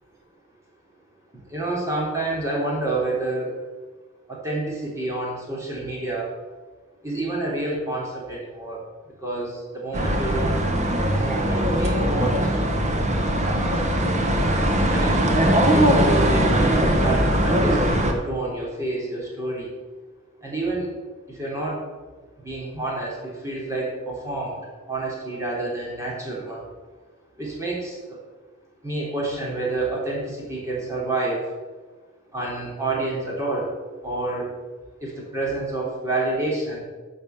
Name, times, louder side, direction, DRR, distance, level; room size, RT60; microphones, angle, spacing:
voice 1, 1.3-3.5 4.3-6.3 7.0-8.9 9.2-10.6 11.1-12.5 13.5-13.9 14.9-19.7 20.4-20.9 21.3-21.8 22.4-24.6 24.9-26.6 27.4-28.2 28.8-31.5 32.3-33.7 34.0-34.5 35.0-36.8, right 2 dB, 15° right, -5 dB, 3.6 m, -28 dB
sound 1, 9.9-18.1, right 1 dB, 35° right, 1.4 m, -20 dB
12.5 x 5.5 x 7.1 m, 1.4 s
head